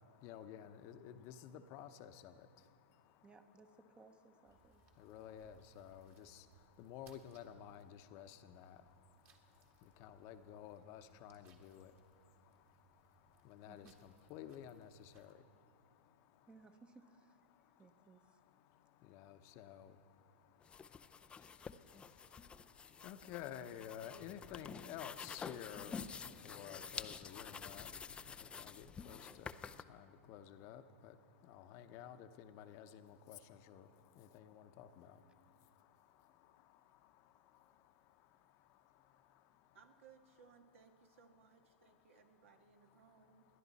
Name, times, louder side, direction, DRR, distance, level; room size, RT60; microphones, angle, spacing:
voice 1, 0.2-2.3 5.0-6.4 6.8-8.8 10.0-11.9 13.4-14.9 15.1-15.3 19.1-19.9 23.0-25.9 26.4-27.9 28.6-29.5 29.9-31.1 31.5-33.9 34.2-35.1, left 10 dB, 40° left, 9 dB, 0.8 m, -52 dB
voice 2, 3.2-4.8 13.7-14.0 16.5-17.4 17.8-18.2, right 3 dB, 15° right, 9 dB, 0.9 m, -62 dB
sound 1, 4.4-15.3, right 5 dB, 30° right, 1.8 m, -71 dB
sound 2, 20.6-29.8, left 6 dB, 15° left, 0.4 m, -49 dB
voice 3, 39.7-43.5, right 6 dB, 70° right, 6 dB, 1.6 m, -64 dB
27.5 x 11.0 x 4.2 m, 2.5 s
hypercardioid pair, 125°, 7 cm